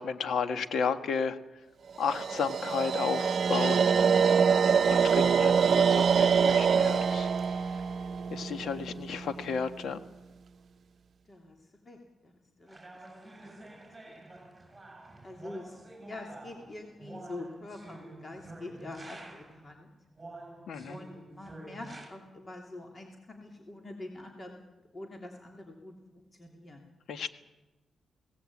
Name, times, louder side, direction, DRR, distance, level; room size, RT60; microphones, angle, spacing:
voice 1, 0.0-1.4 2.0-3.8 4.8-7.3 8.3-10.0 20.7-21.0 27.1-27.3, left 6 dB, 75° left, 9 dB, 1.6 m, -33 dB
sound 1, 2.0-9.2, right 6 dB, 60° right, 0.7 m, -25 dB
voice 2, 11.3-12.8 13.1-13.8 14.1-14.2 15.2-19.9 20.9-24.6 24.9-26.8, left 2 dB, 35° left, 2 dB, 3.0 m, -45 dB
sound 2, 12.7-19.6 20.2-22.1, right 2 dB, 20° right, 6.8 m, -48 dB
23.0 x 18.0 x 8.6 m, 1.1 s
cardioid pair, 80°, 0 cm